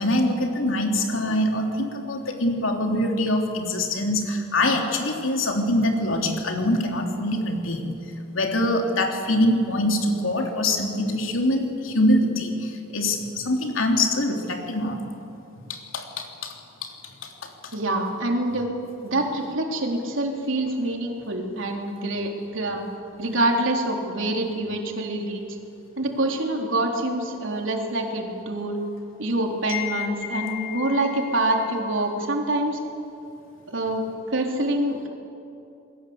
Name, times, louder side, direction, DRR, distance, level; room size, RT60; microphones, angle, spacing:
voice 1, 0.0-7.9 8.3-15.1 15.7-16.5 16.8-16.9 17.2-17.8 29.7-30.1 30.3-31.0, left 1 dB, 85° left, 2 dB, 3.3 m, -24 dB
voice 2, 17.7-18.7 19.0-22.8 23.2-25.4 26.0-28.8 29.2-32.8 33.7-35.1, right 1 dB, 75° right, 1 dB, 3.6 m, -26 dB
28.5 x 20.5 x 8.1 m, 2.7 s
head